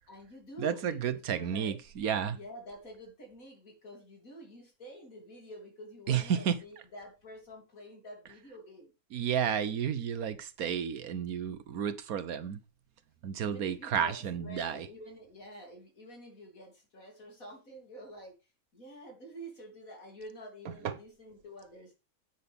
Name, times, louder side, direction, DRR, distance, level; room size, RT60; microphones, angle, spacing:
voice 1, 0.1-1.7 2.3-8.9 13.4-18.3 18.7-21.9, equal, 70° left, 3.6 m, -48 dB
voice 2, 0.6-2.4 6.1-6.6 9.1-12.6 13.2-14.9 20.6-20.9, right 8 dB, 80° right, 1.4 m, -32 dB
10.0 x 9.3 x 3.5 m
omnidirectional pair, 1.5 m